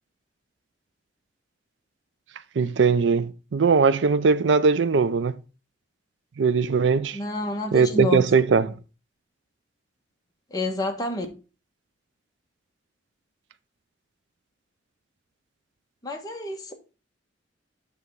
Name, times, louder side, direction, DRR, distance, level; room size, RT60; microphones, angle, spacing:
voice 1, 2.6-5.4 6.4-7.2 7.7-8.8, right 5 dB, 70° right, 0.5 m, -20 dB
voice 2, 7.1-8.2 10.5-11.3 16.0-16.7, left 1 dB, 20° left, 1.3 m, -29 dB
8.3 x 3.5 x 5.2 m
head